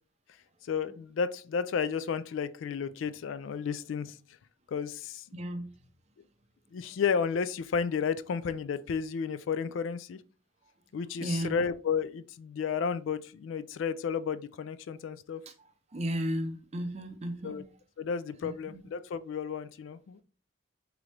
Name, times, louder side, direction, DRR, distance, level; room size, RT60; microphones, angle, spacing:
voice 1, 0.6-4.2 4.7-5.3 6.7-10.2 10.9-15.4 17.4-17.6 18.0-20.2, left 6 dB, 75° left, 0.3 m, -32 dB
voice 2, 5.3-5.7 11.2-11.6 15.9-17.6 18.4-18.8, equal, 35° right, 0.5 m, -34 dB
3.7 x 3.1 x 3.2 m
head